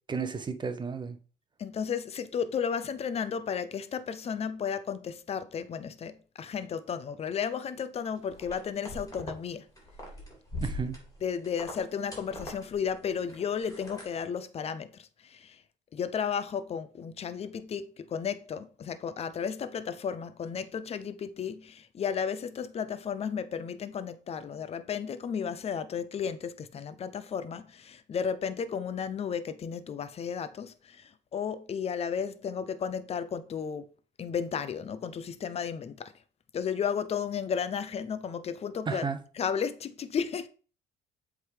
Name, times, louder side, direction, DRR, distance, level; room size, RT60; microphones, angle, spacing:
voice 1, 0.1-1.2 10.6-11.0 38.9-39.2, right 5 dB, 25° right, 0.9 m, -32 dB
voice 2, 1.6-9.7 11.2-15.6 15.9-33.9 34.2-36.1 36.5-39.1 39.4-40.5, left 7 dB, 35° left, 0.7 m, -33 dB
sound 1, 8.3-9.4 9.7-14.2, left 1 dB, 20° left, 3.0 m, -41 dB
7.7 x 3.7 x 4.9 m
cardioid pair, 110°, 17 cm